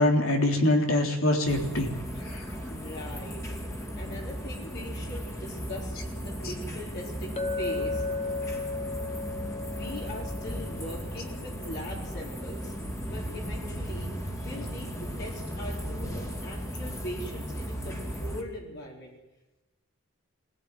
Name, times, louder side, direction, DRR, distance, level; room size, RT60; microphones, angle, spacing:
voice 1, 0.0-1.9 2.2-2.4 6.4-6.5, left 1 dB, 80° left, 2 dB, 3.7 m, -24 dB
sound 1, 1.5-18.4, equal, 15° left, 2.6 m, -36 dB
voice 2, 2.7-3.4 4.0-8.1 9.7-12.7 13.1-14.1 14.4-19.1, equal, 55° left, -3 dB, 4.4 m, -41 dB
Chink clink, 7.4-11.5, left 3 dB, 30° left, 1.2 m, -35 dB
22.0 x 15.5 x 9.4 m, 1.1 s
head